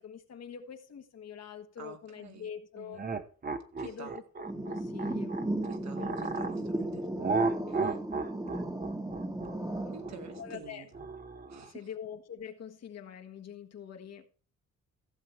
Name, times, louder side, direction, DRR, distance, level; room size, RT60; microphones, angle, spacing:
voice 1, 0.0-3.0 3.8-4.2 4.6-5.3 6.0-6.5 10.4-10.8 11.6-14.3, left 8 dB, 60° left, 1.5 m, -44 dB
voice 2, 1.8-2.5 2.8-3.0 3.8-4.2 5.6-7.1 7.7-8.0 9.9-10.9 11.5-11.9, right 6 dB, 60° right, 2.2 m, -48 dB
sound 1, 2.9-6.6 7.2-11.7, right 4 dB, 30° right, 1.0 m, -34 dB
sound 2, 4.4-10.5, right 1 dB, 10° right, 1.5 m, -35 dB
15.5 x 7.0 x 4.5 m
cardioid pair, 90°, 30 cm